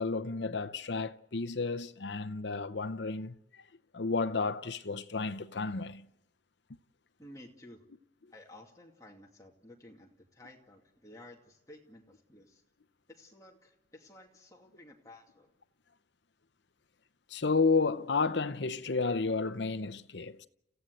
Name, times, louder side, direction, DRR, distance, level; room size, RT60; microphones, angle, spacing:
voice 1, 0.0-3.6 3.9-6.1 17.3-20.5, left 4 dB, 65° left, 0.8 m, -32 dB
voice 2, 7.2-7.8 8.3-12.6 13.1-15.5, left 1 dB, 15° left, 2.4 m, -54 dB
30.0 x 15.5 x 8.0 m
head